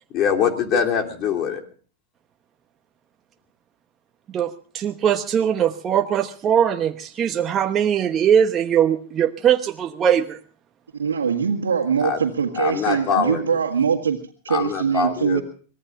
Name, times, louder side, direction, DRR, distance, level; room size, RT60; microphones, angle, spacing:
voice 1, 0.1-1.6 12.0-12.2 12.6-13.4 14.5-15.4, left 7 dB, 40° left, 3 dB, 3.4 m, -23 dB
voice 2, 4.3-10.4, right 9 dB, 30° right, 6 dB, 1.1 m, -21 dB
voice 3, 11.0-15.4, right 6 dB, 90° right, -2 dB, 1.9 m, -22 dB
24.5 x 19.0 x 2.6 m, 0.40 s
hypercardioid pair, 100°, 0 cm